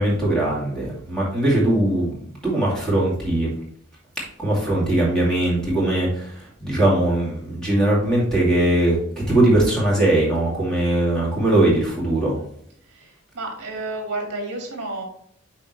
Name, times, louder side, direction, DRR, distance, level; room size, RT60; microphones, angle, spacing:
voice 1, 0.0-2.2 2.4-3.5 4.4-12.4, right 1 dB, 5° left, -6 dB, 2.5 m, -20 dB
voice 2, 12.9-15.0, right 2 dB, 50° right, 1 dB, 2.1 m, -31 dB
8.8 x 4.4 x 3.2 m, 0.66 s
head